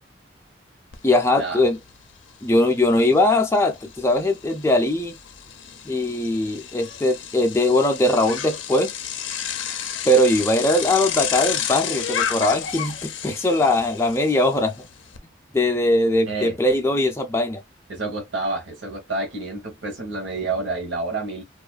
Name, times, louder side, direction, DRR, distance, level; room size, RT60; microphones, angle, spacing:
Bicycle, 0.9-1.0 1.4-15.2, left 9 dB, 75° left, 0.5 m, -32 dB
voice 1, 1.0-1.8 2.4-5.1 5.9-8.9 10.1-14.7 15.5-17.6, left 1 dB, 15° left, 0.4 m, -20 dB
voice 2, 16.3-16.6 17.9-21.4, right 3 dB, 70° right, 0.9 m, -29 dB
2.5 x 2.4 x 2.3 m
head